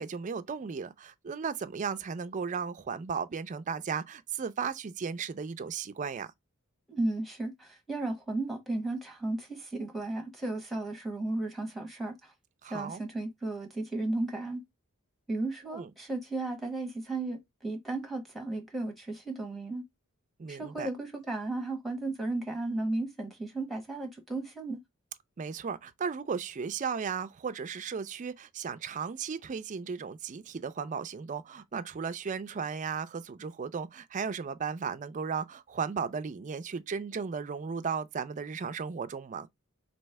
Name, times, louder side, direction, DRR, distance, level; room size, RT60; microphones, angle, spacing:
voice 1, 0.0-6.3 12.6-13.0 15.6-15.9 20.4-20.9 25.4-39.5, right 6 dB, 35° right, 0.4 m, -35 dB
voice 2, 6.9-12.3 12.7-14.6 15.3-19.8 20.5-24.8, right 2 dB, ahead, 1.0 m, -34 dB
3.2 x 2.7 x 4.5 m
head